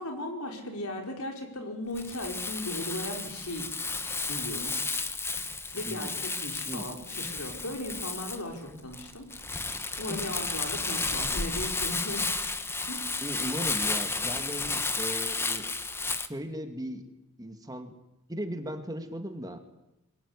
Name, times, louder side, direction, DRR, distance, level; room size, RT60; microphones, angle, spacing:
voice 1, 0.0-3.7 4.3-4.8 5.7-9.2 10.0-12.3 12.9-13.2, left 1 dB, 80° left, 3 dB, 5.2 m, -37 dB
Crumpling crinkling, 1.9-16.3, left 3 dB, 10° left, 1.2 m, -32 dB
voice 2, 13.2-15.7 16.3-17.0 17.4-17.9 18.3-19.6, equal, 15° right, 7 dB, 2.2 m, -37 dB
23.5 x 21.0 x 9.9 m, 0.91 s
head